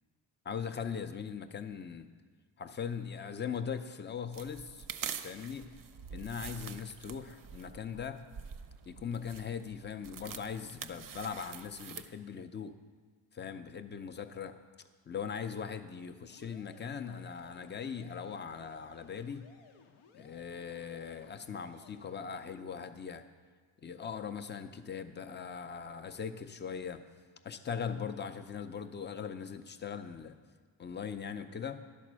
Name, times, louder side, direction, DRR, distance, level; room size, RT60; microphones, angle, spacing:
voice 1, 0.4-2.1 2.6-4.9 5.2-5.7 6.1-8.2 8.8-12.7 13.3-14.6 15.1-19.5 20.1-23.2 23.8-27.0 27.4-30.4 30.8-31.8, left 7 dB, 25° left, 9 dB, 0.4 m, -40 dB
sound 1, 4.3-12.1, right 7 dB, 45° right, 0.5 m, -46 dB
sound 2, 16.3-22.1, left 5 dB, 85° left, 0.8 m, -60 dB
11.0 x 4.2 x 6.1 m, 1.5 s
cardioid pair, 95°, 49 cm